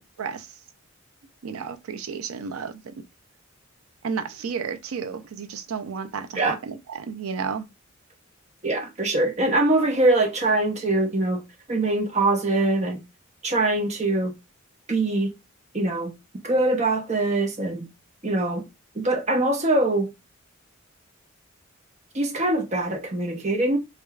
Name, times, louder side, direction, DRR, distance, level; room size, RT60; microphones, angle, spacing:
voice 1, 1.4-2.9 4.0-7.7, right 6 dB, 90° right, 0.5 m, -32 dB
voice 2, 8.6-11.4 11.7-13.0 13.4-14.3 14.9-15.3 15.7-16.1 16.4-17.8 18.2-18.6 18.9-20.1 22.1-23.8, right 2 dB, 35° right, 0.7 m, -23 dB
4.7 x 2.3 x 2.3 m
head